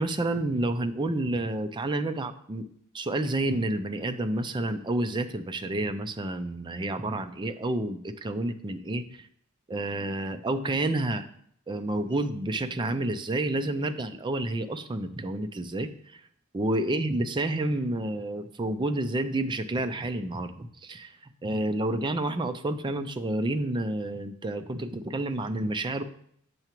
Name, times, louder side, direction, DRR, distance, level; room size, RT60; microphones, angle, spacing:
voice 1, 0.0-2.7 2.9-9.3 9.7-11.3 11.7-16.2 16.5-21.1 21.4-26.0, right 2 dB, 20° right, 8 dB, 0.4 m, -29 dB
7.8 x 5.7 x 3.0 m, 0.67 s
head